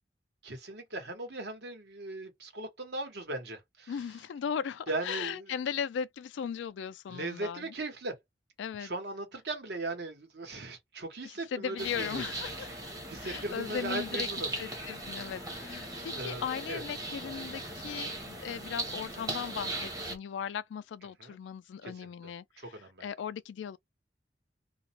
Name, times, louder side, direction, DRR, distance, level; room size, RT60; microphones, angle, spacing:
voice 1, 0.4-3.9 4.9-5.5 7.1-8.2 8.8-12.2 12.6-12.7 13.1-14.5 16.1-16.8 21.2-21.4 21.8-22.3 22.6-23.1, right 2 dB, 65° right, 1.0 m, -38 dB
voice 2, 3.9-7.7 8.6-8.9 11.2-12.8 13.2-14.3 14.6-23.8, left 7 dB, 85° left, 0.3 m, -37 dB
sound 1, 11.8-20.2, right 2 dB, 20° right, 0.8 m, -38 dB
2.3 x 2.0 x 2.8 m
head